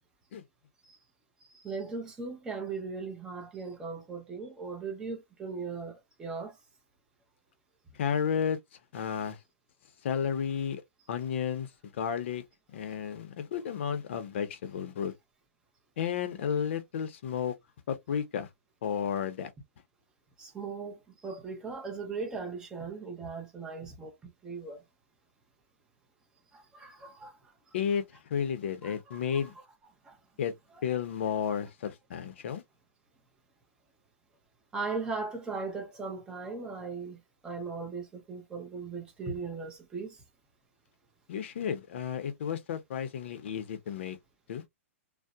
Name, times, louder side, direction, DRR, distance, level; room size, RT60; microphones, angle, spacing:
voice 1, 1.5-6.6 20.4-24.8 26.5-27.4 28.8-29.4 30.0-30.2 30.9-31.0 31.5-31.6 34.7-40.2, right 4 dB, 10° right, 0.6 m, -38 dB
voice 2, 7.9-8.6 8.9-9.4 10.0-10.8 11.1-12.4 12.7-15.1 16.0-17.6 17.9-18.5 18.8-19.5 27.7-29.5 30.4-30.5 30.8-32.6 41.3-44.2 44.5-44.6, left 8 dB, 55° left, 0.6 m, -32 dB
2.6 x 2.0 x 2.3 m
hypercardioid pair, 155°, 8 cm